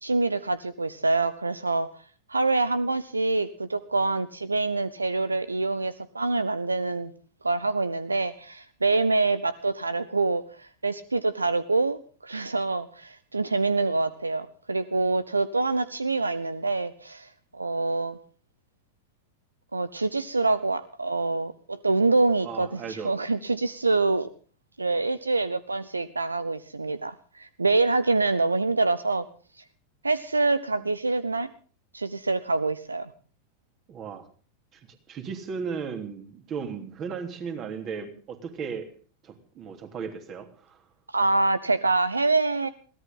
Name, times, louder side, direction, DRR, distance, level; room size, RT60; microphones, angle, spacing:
voice 1, 0.0-1.9 2.3-7.1 7.4-18.2 19.7-24.3 24.8-29.2 30.0-31.5 31.9-33.1 41.1-42.7, right 3 dB, 80° right, 17 dB, 0.7 m, -26 dB
voice 2, 22.4-23.1 30.8-30.9 33.9-34.3 34.7-38.9 39.2-40.9, right 6 dB, 30° right, 6 dB, 3.3 m, -36 dB
22.5 x 17.0 x 3.8 m, 0.40 s
figure-of-eight pair, 90°, 0 cm